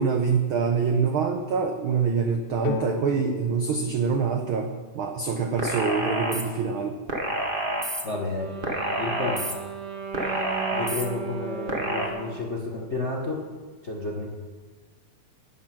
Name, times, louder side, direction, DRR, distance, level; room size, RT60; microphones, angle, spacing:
voice 1, 0.0-7.0, right 5 dB, 85° right, 5 dB, 1.1 m, -25 dB
sound 1, 2.6-6.3, left 5 dB, 75° left, 2.5 m, -37 dB
sound 2, 5.6-6.4 7.1-8.0 8.6-9.5 10.1-11.0 11.7-12.1, right 1 dB, 25° right, 1.1 m, -28 dB
voice 2, 8.0-8.5 9.0-9.5 10.7-13.4 13.8-14.3, left 3 dB, 50° left, -1 dB, 0.8 m, -31 dB
Wind instrument woodwind instrument, 8.1-12.7, right 6 dB, 45° right, 1.6 m, -36 dB
13.0 x 10.0 x 6.0 m, 1.4 s
omnidirectional pair, 3.4 m